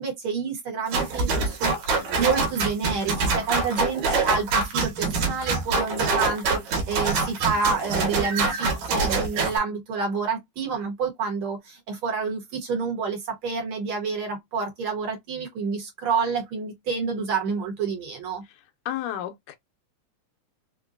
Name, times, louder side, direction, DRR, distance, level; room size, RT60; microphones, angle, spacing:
voice 1, 0.0-18.4, right 5 dB, 60° right, 1.5 m, -28 dB
sound 1, 0.9-9.6, right 3 dB, 75° right, 2.3 m, -25 dB
voice 2, 18.9-19.6, left 12 dB, 90° left, 2.1 m, -31 dB
5.1 x 2.2 x 2.4 m
omnidirectional pair, 3.4 m